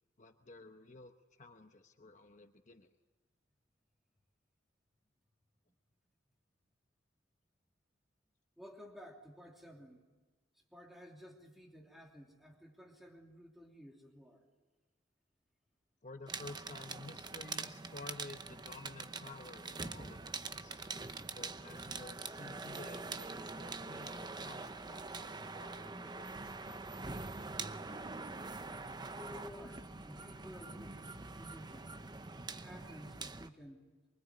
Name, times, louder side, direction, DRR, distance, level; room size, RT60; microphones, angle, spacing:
voice 1, 0.2-3.0 16.0-20.8 21.3-26.8, left 2 dB, 40° left, 6 dB, 1.0 m, -53 dB
voice 2, 8.6-10.0 10.5-14.5 29.0-32.0 32.6-33.9, equal, ahead, 0 dB, 2.9 m, -54 dB
sound 1, 16.3-33.5, right 3 dB, 25° right, 0.8 m, -44 dB
24.5 x 24.0 x 9.5 m, 1.3 s
head